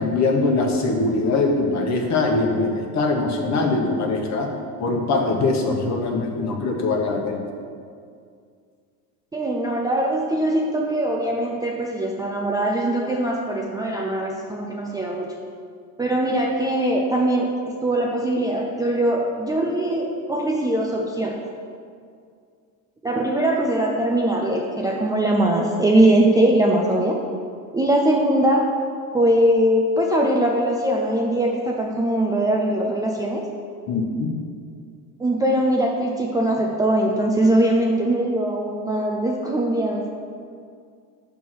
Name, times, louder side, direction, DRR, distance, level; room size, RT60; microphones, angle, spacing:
voice 1, 0.0-4.5 4.8-7.4 33.9-34.3, left 3 dB, 45° left, 2 dB, 1.1 m, -22 dB
voice 2, 9.3-15.3 16.0-17.5 17.8-21.4 23.0-27.2 27.7-28.7 29.1-33.4 35.2-40.1, right 1 dB, 10° right, -1 dB, 0.3 m, -21 dB
6.1 x 3.6 x 6.0 m, 2.3 s
supercardioid pair, 115°, 40 cm